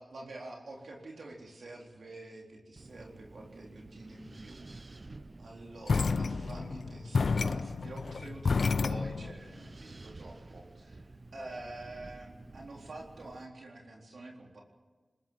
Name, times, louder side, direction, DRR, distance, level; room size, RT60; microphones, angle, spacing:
voice 1, 0.0-5.0 5.4-14.6, right 2 dB, 75° right, 0 dB, 4.0 m, -47 dB
Wind, 2.8-13.5, right 2 dB, 45° right, 0.9 m, -51 dB
sound 1, 5.9-9.4, left 4 dB, 75° left, 0.6 m, -30 dB
21.0 x 20.5 x 7.6 m, 1.4 s
cardioid pair, 55°, 0 cm